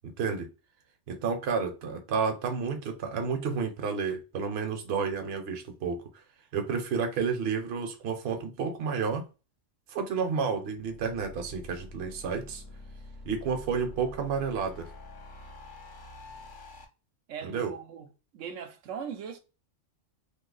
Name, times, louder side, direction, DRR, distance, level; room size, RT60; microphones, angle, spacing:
voice 1, 0.2-0.5 1.1-6.2 6.5-9.2 9.9-12.6 13.3-14.9 17.4-17.7, right 5 dB, 60° right, 0.9 m, -31 dB
sound 1, 10.7-16.8, left 2 dB, 45° left, 0.9 m, -47 dB
voice 2, 17.3-18.1 18.3-19.4, right 7 dB, 85° right, 1.0 m, -39 dB
2.7 x 2.3 x 3.8 m
omnidirectional pair, 1.3 m